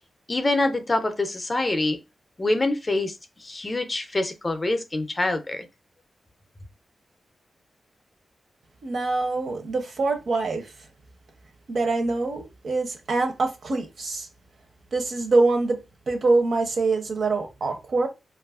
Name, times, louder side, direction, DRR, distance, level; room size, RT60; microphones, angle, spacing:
voice 1, 0.3-2.0 2.4-3.2 3.4-5.7, left 2 dB, 25° left, 0.4 m, -25 dB
voice 2, 8.8-10.7 11.7-14.3 14.9-15.8 16.1-18.1, right 3 dB, 60° right, 0.6 m, -24 dB
2.9 x 2.3 x 2.3 m
wide cardioid pair, 150°, 0 cm